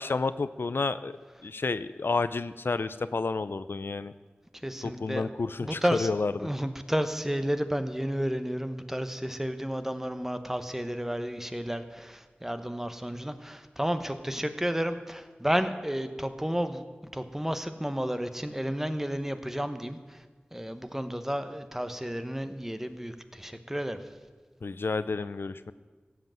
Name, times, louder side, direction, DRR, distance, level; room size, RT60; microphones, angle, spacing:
voice 1, 0.0-4.1 4.8-6.3 24.6-25.7, left 3 dB, 80° left, 14 dB, 0.5 m, -30 dB
voice 2, 4.6-5.3 5.6-6.1 6.4-16.8 17.1-20.2 20.5-24.0, equal, 10° right, 9 dB, 0.9 m, -32 dB
16.0 x 7.9 x 7.6 m, 1.4 s
wide cardioid pair, 65°, 4 cm